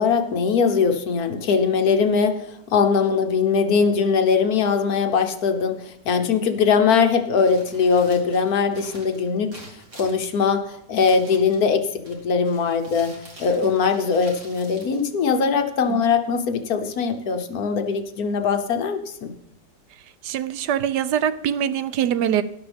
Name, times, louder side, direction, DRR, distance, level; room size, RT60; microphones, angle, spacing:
voice 1, 0.0-9.5 10.0-13.1 13.4-19.3, left 5 dB, 65° left, 8 dB, 1.3 m, -21 dB
Crumpling crinkling, 7.4-15.8, right 1 dB, 50° right, 3.0 m, -46 dB
voice 2, 20.2-22.4, right 9 dB, 80° right, 14 dB, 1.2 m, -23 dB
12.5 x 11.0 x 3.4 m, 0.81 s
omnidirectional pair, 1.9 m